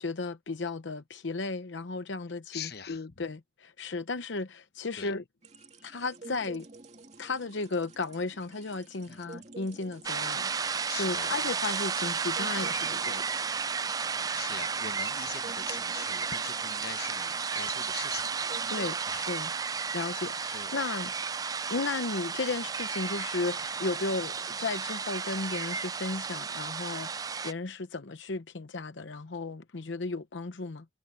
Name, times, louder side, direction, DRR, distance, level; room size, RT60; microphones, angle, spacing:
voice 1, 0.0-5.2 5.8-6.7 7.2-13.2 18.7-19.0 19.3-19.5 19.9-21.1 21.7-30.8, left 3 dB, 75° left, 0.8 m, -34 dB
voice 2, 2.5-3.1 5.0-5.1 9.1-9.3 10.9-11.4 14.3-18.3 19.1-19.3 20.5-20.7, left 7 dB, 55° left, 1.1 m, -42 dB
sound 1, 5.4-19.0, right 3 dB, 35° right, 2.4 m, -50 dB
sound 2, 10.0-27.5, right 5 dB, 20° right, 0.3 m, -33 dB
head